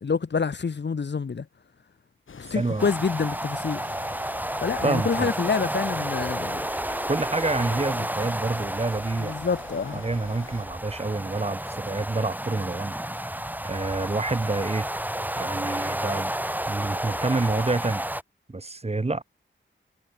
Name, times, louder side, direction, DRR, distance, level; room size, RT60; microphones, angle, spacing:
voice 1, 0.0-1.5 2.4-3.8 4.6-6.6 9.2-10.0, left 5 dB, 60° left, 1.9 m, -27 dB
sound 1, 2.3-10.7, left 6 dB, 80° left, 5.6 m, -47 dB
voice 2, 2.5-2.9 4.8-5.3 7.1-9.5 9.9-12.9 13.6-14.9 15.4-16.3 16.7-18.1 18.5-19.2, right 3 dB, 30° right, 3.2 m, -28 dB
sound 2, 2.8-18.2, right 1 dB, 10° right, 3.2 m, -31 dB
wide cardioid pair, 75°, 20 cm